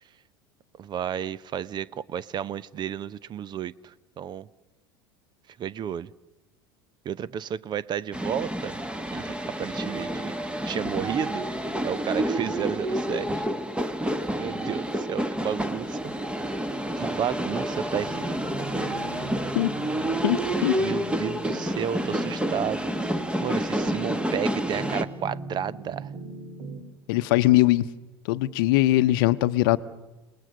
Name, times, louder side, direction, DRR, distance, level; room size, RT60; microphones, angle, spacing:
voice 1, 0.8-4.5 5.6-6.1 7.0-8.8 9.1-10.3 10.6-11.5 11.8-13.3 14.4-16.2 16.5-16.6 16.9-18.3 20.8-26.1, right 9 dB, 35° right, 21 dB, 0.7 m, -32 dB
sound 1, 8.1-25.0, right 1 dB, 10° right, 1.4 m, -29 dB
sound 2, 18.0-26.8, right 2 dB, 50° right, 3.8 m, -39 dB
voice 2, 20.2-20.8 27.1-27.9 28.3-29.8, left 17 dB, 65° left, 15 dB, 0.8 m, -21 dB
29.5 x 19.5 x 6.5 m, 1.1 s
figure-of-eight pair, 75°, 13 cm